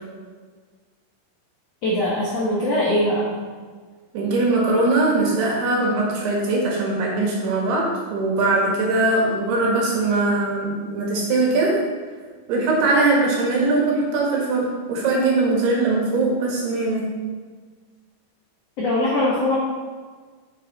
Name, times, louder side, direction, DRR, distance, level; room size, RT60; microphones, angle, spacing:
voice 1, 1.8-3.3 18.8-19.6, left 1 dB, 80° left, -6 dB, 1.4 m, -21 dB
voice 2, 4.1-11.7 12.5-17.1, right 2 dB, 70° right, -3 dB, 3.5 m, -21 dB
7.6 x 6.8 x 4.1 m, 1.5 s
omnidirectional pair, 5.1 m